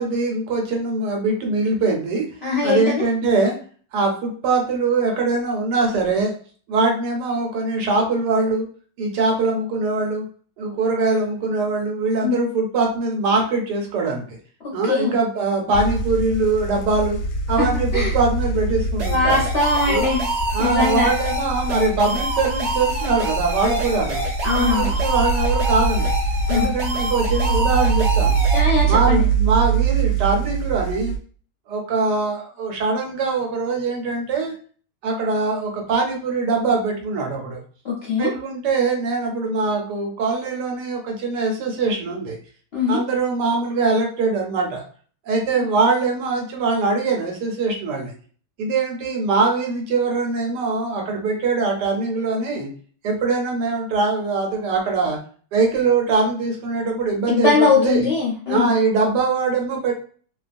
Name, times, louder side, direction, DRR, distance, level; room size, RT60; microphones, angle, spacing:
voice 1, 0.0-2.3 2.6-3.5 3.9-6.3 6.7-8.7 9.0-10.3 10.6-14.4 14.7-17.2 17.5-19.4 19.9-20.1 20.5-24.2 24.6-26.1 26.5-28.4 28.8-31.1 31.7-34.5 35.0-37.6 38.2-42.4 42.9-44.8 45.2-48.1 48.6-52.7 53.0-55.2 55.5-58.0 58.5-59.9, right 3 dB, 75° right, 1 dB, 1.2 m, -22 dB
voice 2, 2.4-3.0 12.2-12.4 14.6-15.2 17.6-17.7 17.9-18.1 19.1-20.2 20.6-21.1 24.4-24.9 26.5-26.7 28.5-29.2 37.8-38.3 42.7-43.0 45.5-45.6 57.3-58.7, left 4 dB, 55° left, -5 dB, 0.7 m, -21 dB
sound 1, 15.7-31.2, right 4 dB, 90° left, 1.3 m, -23 dB
sound 2, 19.0-28.6, right 1 dB, 60° right, 0.7 m, -27 dB
2.7 x 2.3 x 2.5 m, 0.43 s
omnidirectional pair, 1.9 m